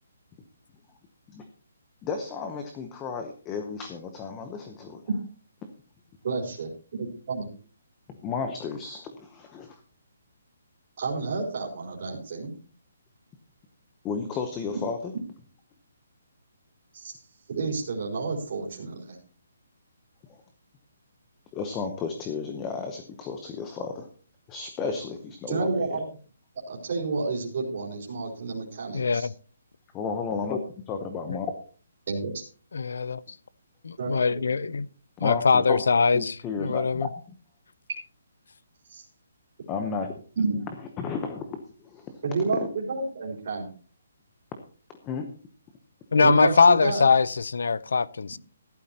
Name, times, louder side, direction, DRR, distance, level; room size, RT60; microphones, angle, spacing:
voice 1, 2.0-5.0 8.2-9.8 14.0-15.1 20.3-20.4 21.5-24.1 24.5-26.0 29.9-30.6 30.9-31.5 35.2-35.8 36.1-37.1 39.7-40.1 40.7-42.2 42.5-42.6 45.0-45.3, left 5 dB, 10° left, 0.8 m, -33 dB
voice 2, 6.2-7.5 11.0-12.5 16.9-17.1 17.5-19.2 25.5-26.0 26.7-29.3 32.1-32.4 34.0-34.5 40.4-40.6 42.2-43.7 46.2-47.1, right 3 dB, 40° right, 4.0 m, -30 dB
voice 3, 28.9-29.3 32.7-33.2 33.8-34.9 35.2-37.1 46.1-48.4, left 5 dB, 75° left, 0.6 m, -22 dB
15.5 x 12.0 x 2.9 m
hypercardioid pair, 175°, 0 cm